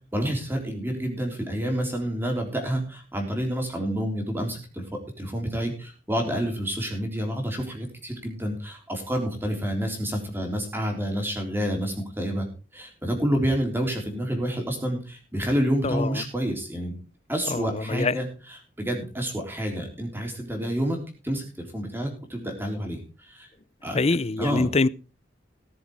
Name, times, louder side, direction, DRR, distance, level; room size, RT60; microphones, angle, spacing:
voice 1, 0.1-12.5 12.7-17.0 17.3-21.0 21.2-23.5 23.8-24.0 24.4-24.7, equal, 10° right, 3.8 m, -29 dB
voice 2, 17.5-18.2 23.9-24.9, left 3 dB, 35° left, 0.5 m, -24 dB
18.5 x 7.3 x 4.9 m
head